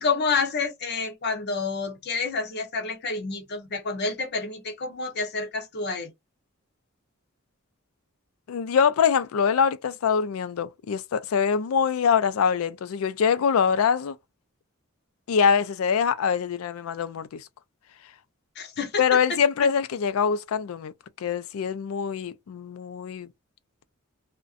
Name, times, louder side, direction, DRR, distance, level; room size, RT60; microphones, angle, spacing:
voice 1, 0.0-6.1 18.6-19.0, left 4 dB, 55° left, 0.8 m, -29 dB
voice 2, 8.5-14.2 15.3-17.5 19.0-20.9 21.2-23.3, left 6 dB, 90° left, 0.4 m, -24 dB
2.5 x 2.2 x 2.4 m
head